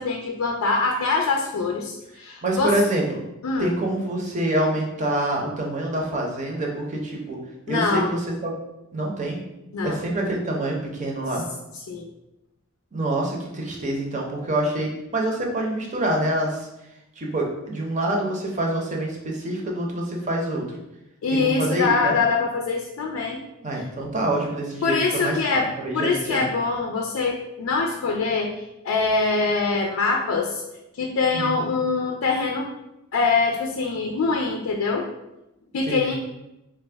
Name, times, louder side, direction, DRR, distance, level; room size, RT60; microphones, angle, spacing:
voice 1, 0.0-2.8 3.4-3.7 7.7-8.1 9.7-10.0 11.9-12.1 21.2-23.4 24.8-30.6 30.9-32.7 33.1-35.1 35.7-36.2, left 4 dB, 85° left, 0 dB, 0.4 m, -24 dB
voice 2, 2.4-3.2 3.6-7.4 7.7-8.5 8.9-9.4 9.8-11.4 12.9-16.7 17.2-20.8 21.3-22.1 23.6-26.4 31.3-31.7 35.9-36.2, right 1 dB, 35° right, -1 dB, 0.6 m, -26 dB
3.3 x 2.1 x 3.3 m, 0.91 s
head